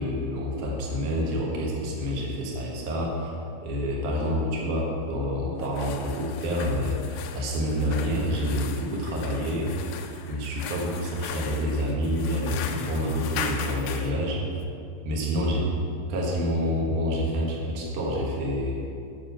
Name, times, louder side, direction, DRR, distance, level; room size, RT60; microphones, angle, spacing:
voice 1, 0.0-3.3 3.6-14.4 15.0-15.7 16.1-18.8, equal, 75° right, -3 dB, 1.8 m, -28 dB
sound 1, 5.6-14.1, left 8 dB, 90° left, 3.4 m, -38 dB
9.8 x 6.6 x 5.7 m, 2.5 s
omnidirectional pair, 6.0 m